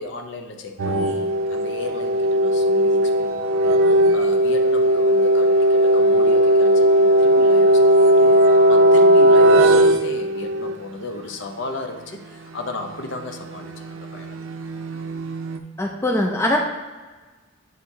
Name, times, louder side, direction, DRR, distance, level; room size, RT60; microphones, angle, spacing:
voice 1, 0.0-14.4, left 2 dB, 60° left, 5 dB, 0.6 m, -35 dB
sound 1, 0.8-10.7 12.9-15.6, right 1 dB, 80° right, 0.5 m, -17 dB
voice 2, 15.8-16.6, left 1 dB, 15° left, 1 dB, 0.4 m, -21 dB
8.1 x 4.6 x 2.7 m, 1.3 s
head